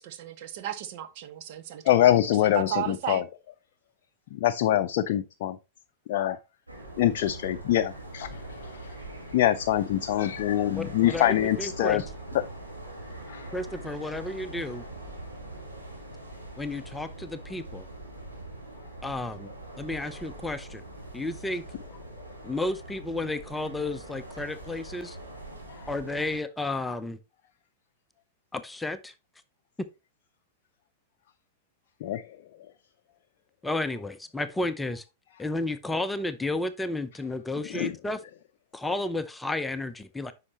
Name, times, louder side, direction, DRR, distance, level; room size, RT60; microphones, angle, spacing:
voice 1, 0.0-2.1 2.5-3.2, right 11 dB, 50° right, 0.9 m, -34 dB
voice 2, 1.8-3.2 4.3-5.6 6.1-6.4 7.0-9.0 9.3-12.1 12.3-12.4 13.3-13.5 22.1-22.2 25.7-25.9 32.0-32.4 37.7-38.0, left 12 dB, 50° left, 0.5 m, -25 dB
sound 1, 6.7-26.4, right 1 dB, 85° right, 2.7 m, -42 dB
voice 3, 10.7-12.0 13.5-14.8 16.6-17.9 19.0-19.5 19.8-20.8 21.1-21.6 22.4-25.2 25.9-27.2 28.5-29.1 33.6-35.0 35.4-38.2 38.7-40.3, left 2 dB, 10° left, 0.6 m, -32 dB
9.7 x 5.7 x 2.9 m
figure-of-eight pair, 95°, 0 cm